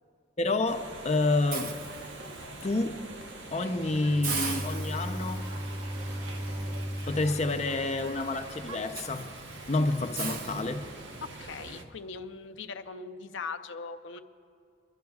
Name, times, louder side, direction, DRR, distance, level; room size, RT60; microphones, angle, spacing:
voice 1, 0.4-0.8 1.0-1.8 2.6-3.1 3.5-5.4 7.1-9.3 9.7-10.8, left 2 dB, 35° left, 7 dB, 0.6 m, -28 dB
sound 1, 0.7-11.8, right 2 dB, 75° right, 1.1 m, -44 dB
Hiss, 1.5-2.6 3.1-3.3 3.6-3.7 4.2-11.3, right 4 dB, 50° right, 0.9 m, -40 dB
Bowed string instrument, 3.6-8.8, equal, 25° right, 1.7 m, -37 dB
voice 2, 11.2-14.2, left 4 dB, 80° left, 9 dB, 0.6 m, -40 dB
29.0 x 12.0 x 2.4 m, 2.5 s
head